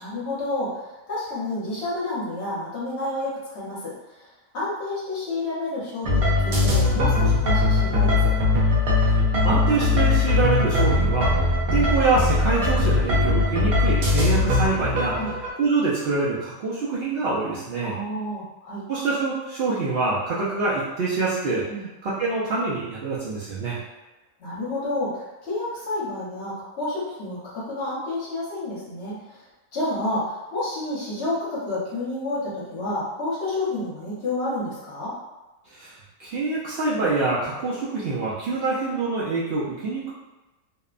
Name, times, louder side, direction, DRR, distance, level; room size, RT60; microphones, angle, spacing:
voice 1, 0.0-4.3 4.5-8.3 15.1-15.3 17.8-18.8 21.7-21.9 24.4-29.4 29.7-35.1, left 2 dB, 55° left, -7 dB, 1.0 m, -30 dB
sound 1, 6.0-15.5, left 2 dB, 85° right, 1.1 m, -20 dB
voice 2, 9.1-11.3 11.7-15.2 15.6-18.0 18.9-21.6 22.0-23.8 35.7-35.9 36.2-40.1, right 3 dB, 65° right, -8 dB, 0.6 m, -25 dB
2.8 x 2.1 x 2.4 m, 1.1 s
omnidirectional pair, 1.5 m